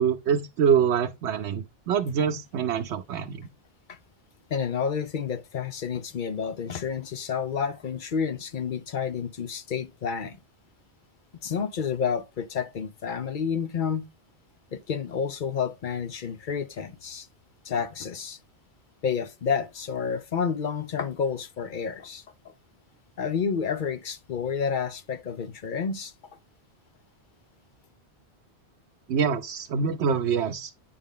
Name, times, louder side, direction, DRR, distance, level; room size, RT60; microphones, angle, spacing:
voice 1, 0.0-3.5 29.1-30.7, right 7 dB, 90° right, 0.9 m, -25 dB
voice 2, 4.5-10.4 11.4-14.1 14.7-17.3 17.6-18.4 19.0-22.5 23.2-26.1, left 6 dB, 55° left, 0.8 m, -30 dB
8.7 x 5.1 x 3.6 m
omnidirectional pair, 1.1 m